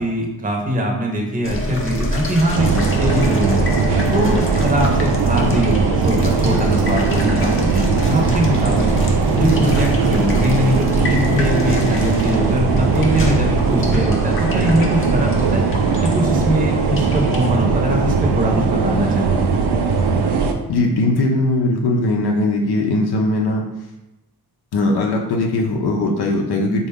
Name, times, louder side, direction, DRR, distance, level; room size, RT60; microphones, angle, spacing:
voice 1, 0.0-3.7 4.1-8.9 9.4-15.7 16.0-19.4, equal, 20° right, 0 dB, 0.7 m, -21 dB
sound 1, 1.4-17.5, equal, 35° left, 0.6 m, -26 dB
sound 2, 2.5-20.5, right 4 dB, 90° right, 0.5 m, -19 dB
voice 2, 20.7-23.6 24.7-26.9, left 2 dB, 75° left, 0 dB, 0.6 m, -19 dB
3.7 x 2.2 x 3.5 m, 0.97 s
cardioid pair, 95°, 39 cm